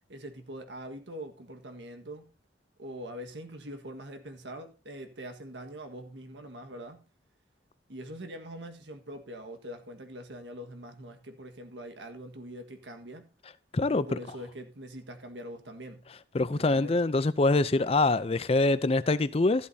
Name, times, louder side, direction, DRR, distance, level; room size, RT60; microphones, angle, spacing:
voice 1, 0.1-2.3 2.8-7.0 7.9-13.3 13.9-16.1 16.6-16.9, equal, 85° right, 1.6 m, -43 dB
voice 2, 13.7-14.2 16.3-19.7, left 2 dB, 35° left, 0.5 m, -25 dB
13.0 x 11.5 x 2.8 m
head